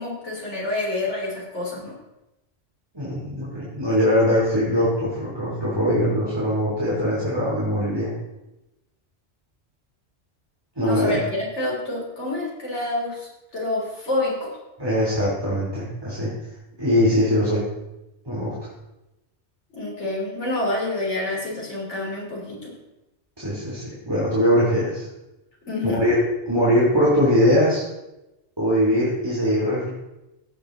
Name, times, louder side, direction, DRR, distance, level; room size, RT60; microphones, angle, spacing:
voice 1, 0.0-2.0 10.8-14.6 19.7-22.7 25.7-26.1, left 2 dB, 80° left, -4 dB, 3.9 m, -28 dB
voice 2, 2.9-8.1 10.8-11.2 14.8-16.3 16.8-17.6 18.2-18.5 23.4-25.1 25.9-26.2 26.5-27.8 28.6-29.9, equal, 20° right, -8 dB, 3.4 m, -21 dB
16.5 x 8.5 x 4.0 m, 0.96 s
omnidirectional pair, 1.2 m